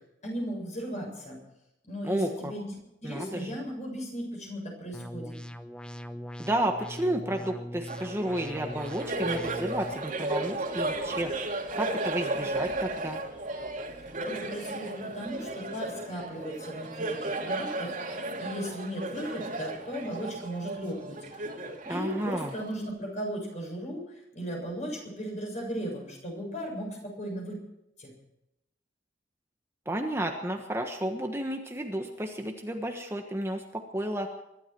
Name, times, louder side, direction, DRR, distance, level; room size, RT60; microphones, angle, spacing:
voice 1, 0.2-1.4 1.8-2.7 3.0-5.3 14.3-21.6 21.9-27.6 28.0-28.1, equal, 40° left, 0 dB, 7.2 m, -36 dB
voice 2, 2.0-2.5 3.0-3.6 6.4-11.3 11.8-13.2 21.8-22.5 29.8-34.3, right 1 dB, 15° right, 3 dB, 1.4 m, -32 dB
sound 1, 4.9-9.9, equal, 5° left, 0.9 m, -41 dB
Laughter, 7.9-22.9, right 2 dB, 50° right, 2.8 m, -35 dB
24.0 x 12.5 x 4.6 m, 0.86 s
head